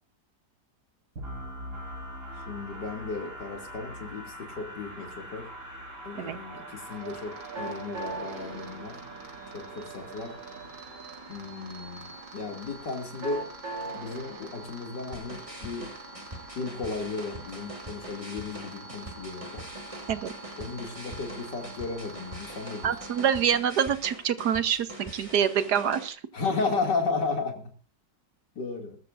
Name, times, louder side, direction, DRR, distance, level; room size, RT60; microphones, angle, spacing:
sound 1, 1.2-12.9, right 1 dB, 50° right, 3.3 m, -43 dB
voice 1, 2.5-5.5 6.0-9.0 9.5-10.3 11.3-13.4 13.9-15.9 16.5-19.6 20.6-22.9 26.3-27.7 28.6-29.0, left 4 dB, 70° left, 3 dB, 3.2 m, -34 dB
sound 2, 6.9-23.5, right 2 dB, 85° right, 3.7 m, -43 dB
sound 3, 15.1-26.1, right 1 dB, 20° right, 2.5 m, -43 dB
voice 2, 22.8-26.2, right 8 dB, 65° right, 12 dB, 1.5 m, -26 dB
22.0 x 12.5 x 2.6 m, 0.36 s
omnidirectional pair, 1.9 m